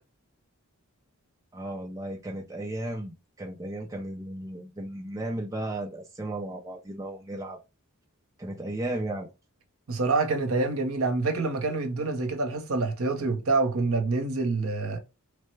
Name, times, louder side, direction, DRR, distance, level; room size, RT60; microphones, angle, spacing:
voice 1, 1.5-7.6 8.4-9.3, right 1 dB, 15° right, 0.5 m, -35 dB
voice 2, 9.9-15.0, right 3 dB, 65° right, 0.8 m, -26 dB
3.2 x 2.1 x 3.1 m
head